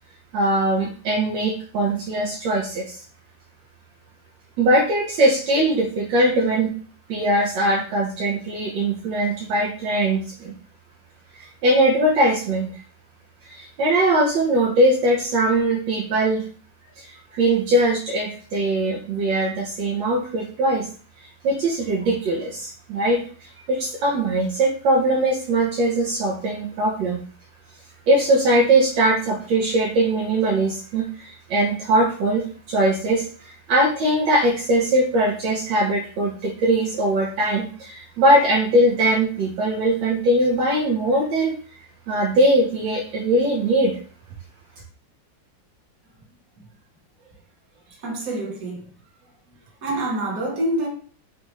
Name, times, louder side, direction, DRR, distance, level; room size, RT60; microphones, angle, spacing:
voice 1, 0.3-3.0 4.6-6.7 7.1-10.5 11.4-12.7 13.4-16.4 17.0-20.9 21.4-27.2 28.1-41.5 42.1-43.9, right 1 dB, 75° right, 1.4 m, -21 dB
voice 2, 47.9-48.9 49.8-50.9, right 1 dB, 50° right, 1.6 m, -27 dB
5.3 x 2.4 x 3.0 m
omnidirectional pair, 2.1 m